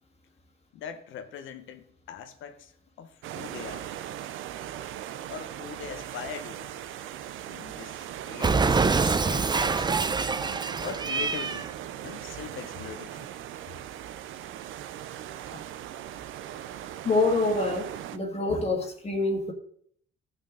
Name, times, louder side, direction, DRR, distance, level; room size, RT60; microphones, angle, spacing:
voice 1, 0.7-3.9 5.3-6.7 7.4-9.9 10.8-11.7 12.0-13.3, left 7 dB, 80° left, 1.1 m, -41 dB
sound 1, 3.2-18.2, right 11 dB, 85° right, 0.6 m, -39 dB
Cat, 8.4-11.7, right 4 dB, 20° right, 0.5 m, -25 dB
voice 2, 17.0-19.5, left 3 dB, 30° left, 1.8 m, -26 dB
13.5 x 6.1 x 3.9 m
cardioid pair, 90°, 20 cm